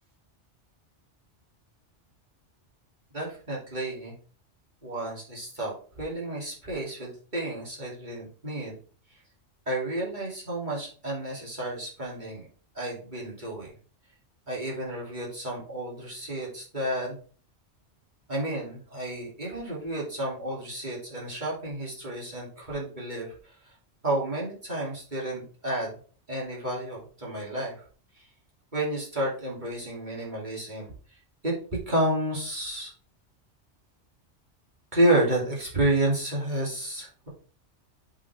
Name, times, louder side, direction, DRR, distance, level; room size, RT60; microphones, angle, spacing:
voice 1, 3.1-4.1 4.8-8.7 9.7-12.5 12.7-13.7 14.5-17.2 18.3-23.3 24.0-26.0 26.3-27.7 28.7-30.9 31.4-31.5 31.9-32.9 34.9-37.3, right 1 dB, 40° right, -5 dB, 3.4 m, -30 dB
8.1 x 5.8 x 3.6 m, 0.42 s
omnidirectional pair, 1.2 m